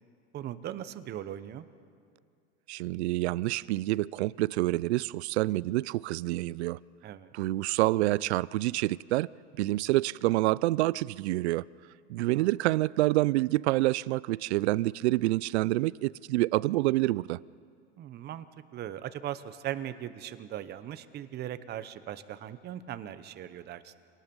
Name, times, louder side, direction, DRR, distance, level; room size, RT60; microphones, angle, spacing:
voice 1, 0.3-1.6 7.0-7.3 12.3-12.5 18.0-18.4 18.7-24.0, right 11 dB, 30° right, 0.9 m, -39 dB
voice 2, 2.7-6.8 7.3-9.3 9.6-11.6 12.1-17.4, right 18 dB, 70° right, 0.5 m, -27 dB
27.0 x 19.0 x 5.4 m
hypercardioid pair, 120°, 34 cm